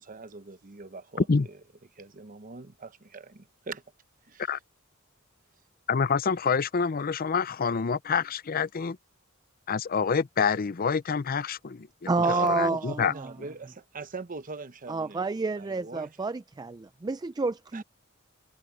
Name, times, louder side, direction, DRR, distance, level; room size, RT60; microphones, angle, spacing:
voice 1, 0.0-1.6 1.9-3.8 4.2-4.5 12.2-16.2 17.7-17.8, right 4 dB, 40° right, 0.9 m, -42 dB
voice 2, 5.9-9.0 9.7-13.1, left 5 dB, 45° left, 0.5 m, -27 dB
voice 3, 12.1-13.3 14.9-17.8, right 3 dB, 20° right, 0.3 m, -29 dB
head